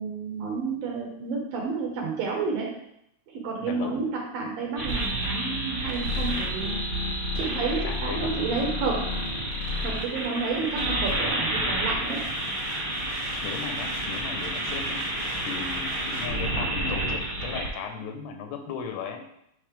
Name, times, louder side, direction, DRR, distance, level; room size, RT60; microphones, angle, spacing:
voice 1, 0.0-2.7 3.3-6.7 7.3-9.0 9.8-12.2, right 4 dB, 70° right, -1 dB, 2.3 m, -30 dB
voice 2, 3.6-3.9 7.8-8.3 13.4-15.2 15.4-19.2, left 6 dB, 80° left, 4 dB, 2.6 m, -37 dB
sound 1, 4.8-17.7, equal, 30° left, 1.0 m, -29 dB
8.6 x 3.2 x 5.0 m, 0.76 s
omnidirectional pair, 4.8 m